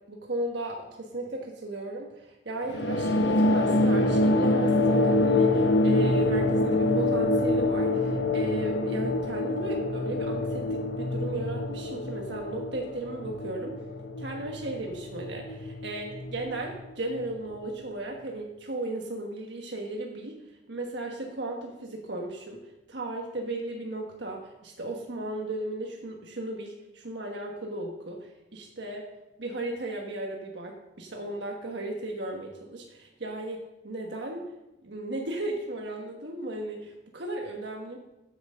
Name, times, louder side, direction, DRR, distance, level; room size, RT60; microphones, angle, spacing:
voice 1, 0.1-13.8 14.2-20.3 20.7-29.1 29.4-34.5 34.8-38.0, right 2 dB, 70° right, 0 dB, 1.3 m, -35 dB
sound 1, 2.7-17.6, left 2 dB, 70° left, 0.7 m, -26 dB
8.8 x 8.0 x 6.7 m, 0.94 s
head